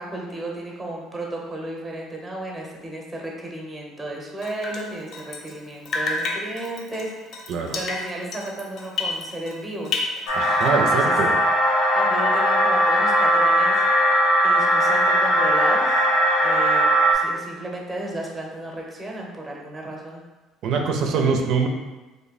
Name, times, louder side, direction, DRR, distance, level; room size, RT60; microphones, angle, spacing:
voice 1, 0.0-10.1 10.7-11.2 11.8-13.9 14.4-16.1 16.4-20.2 21.0-21.4, right 1 dB, 10° right, -1 dB, 0.8 m, -33 dB
Drip, 4.4-5.6 5.8-9.6 9.8-10.9, left 3 dB, 55° left, 0.5 m, -30 dB
sound 1, 10.3-17.1, equal, 75° left, 0.9 m, -19 dB
voice 2, 10.3-11.3 20.6-21.7, right 5 dB, 65° right, 3 dB, 0.4 m, -23 dB
3.1 x 2.1 x 4.0 m, 1.2 s
cardioid pair, 110°, 0 cm